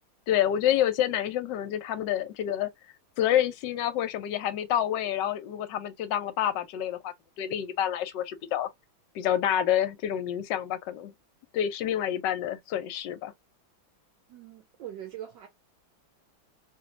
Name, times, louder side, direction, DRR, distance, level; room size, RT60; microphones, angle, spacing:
voice 1, 0.3-2.7 3.2-8.7 9.1-11.1 11.5-13.3, left 11 dB, 70° left, 1.2 m, -28 dB
voice 2, 14.3-15.5, right 11 dB, 70° right, 1.3 m, -42 dB
3.2 x 2.9 x 2.4 m
omnidirectional pair, 2.2 m